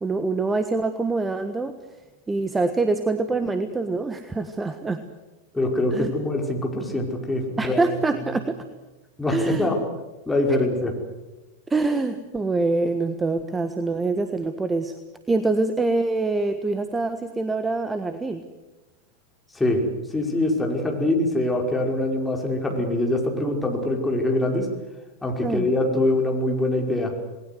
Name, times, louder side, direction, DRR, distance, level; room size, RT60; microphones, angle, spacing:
voice 1, 0.0-1.8 2.3-5.0 5.9-6.1 7.6-8.6 9.3-9.7 11.7-14.9 15.3-18.4 25.4-25.7, right 3 dB, 10° right, 10 dB, 1.4 m, -25 dB
voice 2, 5.5-7.9 9.2-9.8 10.3-10.9 19.5-19.8 20.1-24.7 25.2-27.1, left 1 dB, 10° left, 1 dB, 5.2 m, -24 dB
28.5 x 20.0 x 8.1 m, 1.1 s
figure-of-eight pair, 90°, 0 cm